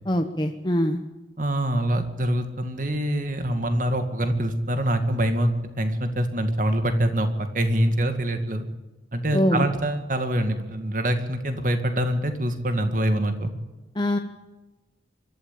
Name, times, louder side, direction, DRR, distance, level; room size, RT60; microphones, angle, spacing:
voice 1, 0.1-1.0 9.3-9.7 14.0-14.2, equal, 25° left, 4 dB, 0.9 m, -23 dB
voice 2, 1.4-5.5 5.8-8.7 9.1-13.5, right 1 dB, 45° right, 7 dB, 2.1 m, -24 dB
25.0 x 12.5 x 8.6 m, 1.1 s
head